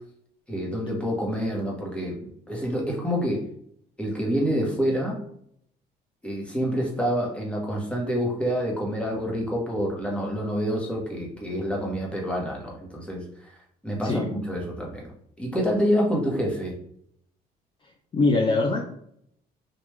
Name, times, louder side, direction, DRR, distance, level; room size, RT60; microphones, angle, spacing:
voice 1, 0.5-2.2 2.5-3.5 4.0-5.2 6.2-13.2 13.8-15.1 15.4-16.7, equal, 5° left, -2 dB, 1.2 m, -27 dB
voice 2, 18.1-18.9, left 3 dB, 30° left, 1 dB, 0.5 m, -22 dB
3.3 x 2.5 x 3.3 m, 0.70 s
cardioid pair, 110°, 17 cm